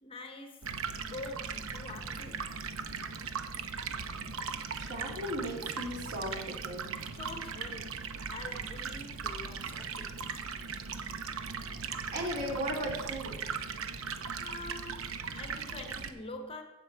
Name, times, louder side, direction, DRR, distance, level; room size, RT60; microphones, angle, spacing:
voice 1, 0.0-2.6 6.9-10.2 14.4-16.6, left 2 dB, 25° left, 0.8 m, -45 dB
Stream, 0.6-16.1, right 5 dB, 65° right, 0.8 m, -38 dB
voice 2, 4.8-6.9 11.8-13.5, equal, 50° right, 3.2 m, -37 dB
15.5 x 6.7 x 4.5 m
head